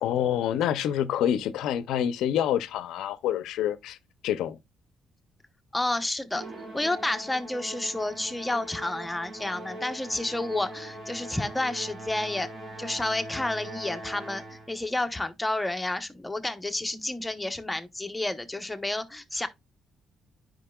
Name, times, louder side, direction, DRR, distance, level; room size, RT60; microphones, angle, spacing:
voice 1, 0.0-4.0 4.2-4.6, left 10 dB, 85° left, 0.6 m, -27 dB
voice 2, 5.7-6.4 6.7-12.5 12.8-19.5, left 2 dB, 10° left, 0.9 m, -30 dB
Musical instrument, 6.3-14.8, right 1 dB, 45° right, 2.0 m, -41 dB
10.0 x 5.0 x 2.3 m
cardioid pair, 90°, 0 cm